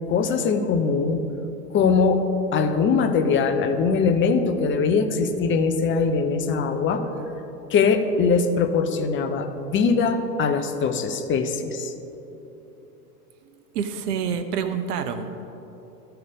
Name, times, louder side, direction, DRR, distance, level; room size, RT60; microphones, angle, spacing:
voice 1, 0.1-1.2 1.7-2.2 2.5-7.0 7.7-11.9, left 5 dB, 25° left, 8 dB, 0.7 m, -22 dB
voice 2, 13.7-15.5, right 7 dB, 75° right, 8 dB, 0.8 m, -27 dB
13.5 x 4.6 x 5.2 m, 3.0 s
hypercardioid pair, 95°, 47 cm